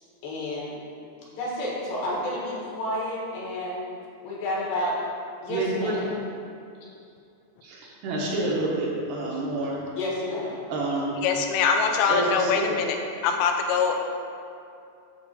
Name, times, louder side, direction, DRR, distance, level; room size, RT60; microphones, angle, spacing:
voice 1, 0.2-0.8 1.4-3.8 4.2-4.9 5.4-6.0 10.0-10.6, left 1 dB, 75° left, -5 dB, 3.6 m, -30 dB
voice 2, 5.5-6.2 7.6-9.8 10.7-11.2 12.1-12.8, right 2 dB, 75° right, -4 dB, 3.0 m, -28 dB
voice 3, 11.2-13.0 13.2-13.9, left 6 dB, 90° left, 4 dB, 2.9 m, -23 dB
9.3 x 3.2 x 6.7 m, 2.5 s
omnidirectional pair, 4.9 m